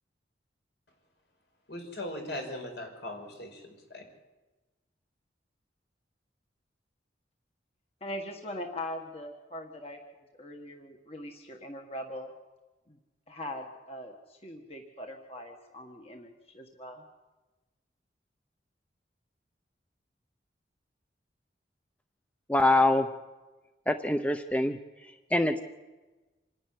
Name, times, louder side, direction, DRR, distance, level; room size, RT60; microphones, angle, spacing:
voice 1, 1.7-4.0, left 1 dB, 70° left, 3 dB, 5.5 m, -39 dB
voice 2, 8.0-12.3 12.9-13.0 13.3-17.0, left 1 dB, 35° left, 2 dB, 1.7 m, -41 dB
voice 3, 22.5-23.1 23.9-24.8 25.3-25.6, left 2 dB, 10° left, 8 dB, 0.7 m, -24 dB
27.5 x 11.0 x 9.6 m, 1.2 s
head